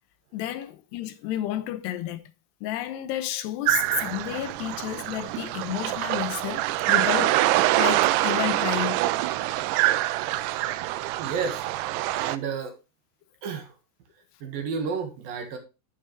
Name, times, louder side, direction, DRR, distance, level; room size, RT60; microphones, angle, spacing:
voice 1, 0.3-2.3 2.6-9.1, left 12 dB, 80° left, 2.9 m, -31 dB
sound 1, 3.7-12.4, right 16 dB, 85° right, 2.6 m, -25 dB
voice 2, 11.2-11.9 12.1-12.7 13.4-13.7 14.4-15.6, right 5 dB, 65° right, 3.1 m, -31 dB
11.5 x 7.2 x 3.2 m
omnidirectional pair, 4.7 m